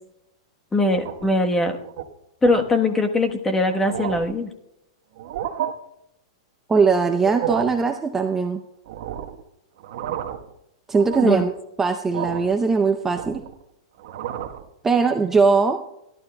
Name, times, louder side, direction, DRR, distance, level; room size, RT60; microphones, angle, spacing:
voice 1, 0.7-1.8 2.4-4.5 11.2-11.4, left 2 dB, 10° left, 5 dB, 1.1 m, -21 dB
sound 1, 0.8-1.4 1.8-2.0 2.4-2.7 3.3-3.4 3.7-4.4 5.1-5.7 7.1-7.8 8.9-9.4 9.8-10.5 10.9-11.5 12.1-12.6 12.9-13.6 14.0-14.6, right 10 dB, 60° right, 1.1 m, -31 dB
voice 2, 6.7-8.6 10.9-11.5 11.8-13.4 14.8-15.8, right 4 dB, 10° right, 6 dB, 0.5 m, -20 dB
27.0 x 12.0 x 2.2 m, 0.84 s
hypercardioid pair, 145°, 3 cm